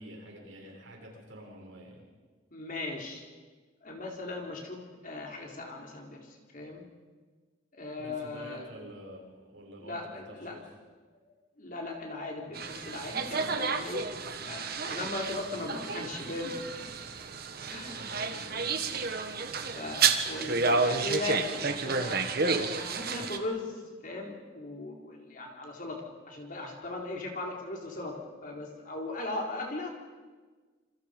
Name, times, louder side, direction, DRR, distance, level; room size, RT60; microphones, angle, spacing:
voice 1, 0.0-2.0 8.0-10.7 18.0-18.7, equal, 70° right, -1 dB, 7.2 m, -48 dB
voice 2, 2.5-3.2 3.8-6.9 7.7-8.7 9.8-10.6 11.6-14.1 14.4-16.9 17.7-18.2 18.8-18.9 19.7-22.2 22.5-29.9, left 2 dB, 45° left, 0 dB, 4.3 m, -38 dB
sound 1, 12.5-23.4, right 4 dB, 50° right, 1.6 m, -31 dB
27.5 x 26.0 x 5.4 m, 1.4 s
head